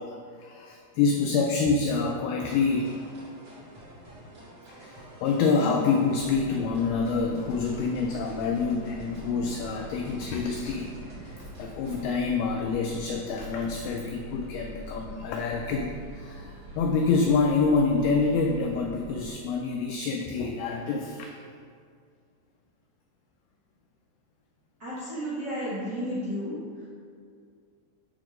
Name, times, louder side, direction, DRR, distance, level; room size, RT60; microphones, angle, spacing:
voice 1, 0.0-3.1 4.7-21.4, left 4 dB, 90° left, 2 dB, 2.2 m, -27 dB
sound 1, 2.5-12.1, right 1 dB, 45° right, 1.4 m, -49 dB
sound 2, 6.2-19.3, right 1 dB, 65° right, 3.0 m, -44 dB
voice 2, 24.8-26.6, equal, 90° right, -9 dB, 0.9 m, -32 dB
8.6 x 3.7 x 5.0 m, 2.2 s
omnidirectional pair, 5.0 m